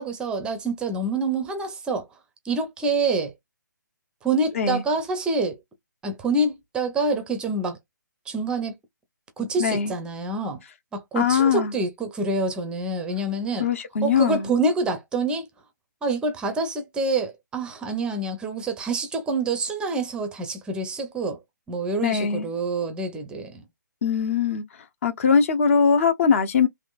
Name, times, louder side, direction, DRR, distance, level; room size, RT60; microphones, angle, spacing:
voice 1, 0.0-2.1 2.4-3.3 4.2-5.6 6.0-7.8 8.3-8.8 9.4-10.6 10.9-13.7 14.0-15.5 16.0-21.4 21.7-23.6, right 3 dB, 10° right, 0.5 m, -26 dB
voice 2, 9.6-9.9 11.2-11.7 13.6-14.5 22.0-22.5 24.0-24.6 25.0-26.7, left 6 dB, 45° left, 0.7 m, -21 dB
3.5 x 3.0 x 2.3 m
figure-of-eight pair, 140°, 10 cm